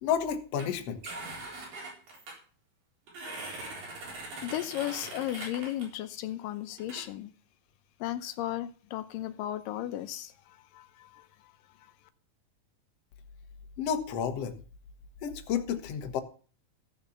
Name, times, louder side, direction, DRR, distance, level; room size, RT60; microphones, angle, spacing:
voice 1, 0.0-1.0 13.8-14.6 15.2-16.2, left 8 dB, 60° left, 2.0 m, -31 dB
sound 1, 0.6-0.7 1.0-2.3 3.1-5.9 6.8-7.0, right 2 dB, 80° right, 5.8 m, -41 dB
voice 2, 4.4-7.3 8.0-11.5, left 13 dB, 80° left, 2.3 m, -35 dB
14.5 x 6.7 x 7.1 m
omnidirectional pair, 3.9 m